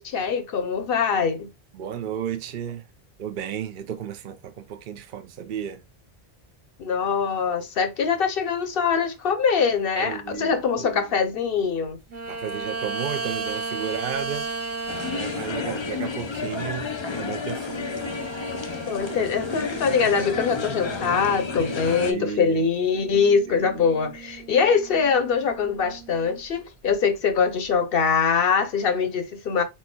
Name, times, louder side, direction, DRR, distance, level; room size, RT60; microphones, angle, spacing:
voice 1, 0.0-1.5 6.8-12.0 18.9-29.6, left 6 dB, 65° left, 0.9 m, -23 dB
voice 2, 1.7-2.8 3.2-5.8 9.9-11.0 12.3-14.5 15.1-17.9 21.9-22.6 23.5-23.8, right 8 dB, 60° right, 0.7 m, -33 dB
sound 1, 12.1-16.4 17.7-22.0 22.9-26.4 26.9-27.0, right 3 dB, 15° right, 0.8 m, -36 dB
sound 2, 14.9-22.1, left 5 dB, 40° left, 0.4 m, -31 dB
4.3 x 4.3 x 2.2 m
omnidirectional pair, 1.1 m